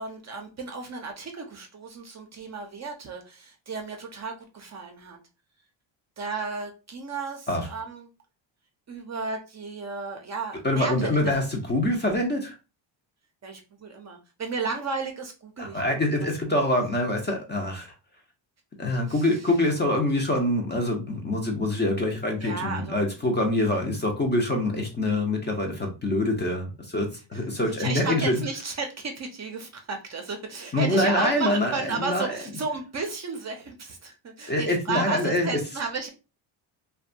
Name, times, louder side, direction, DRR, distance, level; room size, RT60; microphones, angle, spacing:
voice 1, 0.0-5.2 6.2-8.1 8.9-11.4 13.4-16.1 19.1-19.2 22.4-23.0 27.8-36.1, right 4 dB, 35° right, 4 dB, 0.5 m, -33 dB
voice 2, 10.6-12.5 15.6-17.9 18.8-28.4 30.7-32.4 34.5-35.6, left 1 dB, 25° left, 2 dB, 0.5 m, -25 dB
2.6 x 2.2 x 2.4 m, 0.31 s
cardioid pair, 100°, 48 cm